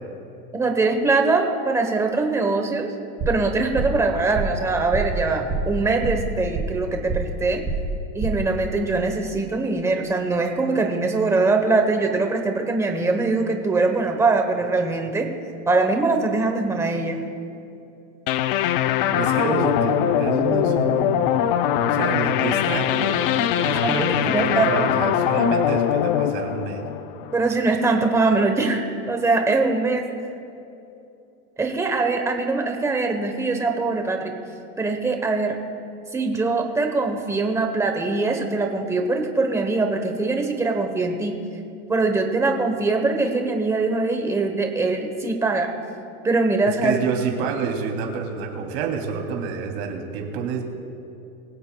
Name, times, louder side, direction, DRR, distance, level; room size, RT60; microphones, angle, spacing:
voice 1, 0.5-2.9 3.3-7.6 8.1-15.3 15.7-17.2 23.8-24.9 27.3-30.0 31.6-34.3 34.8-35.6 36.1-41.4 41.9-45.7 46.2-47.0, right 3 dB, 5° right, 4 dB, 0.9 m, -22 dB
sound 1, 3.2-3.5 3.8-4.0 4.4-4.6 4.9-5.2 5.5-5.8 6.0-6.8 7.1-7.4 7.7-8.0 8.2-8.5, right 4 dB, 25° right, 3.9 m, -27 dB
sound 2, 18.3-27.6, left 10 dB, 45° left, 0.5 m, -22 dB
voice 2, 19.1-21.5 21.7-26.9 46.6-50.6, right 5 dB, 50° right, 1 dB, 2.9 m, -28 dB
24.0 x 16.5 x 2.3 m, 2.7 s
supercardioid pair, 170°, 39 cm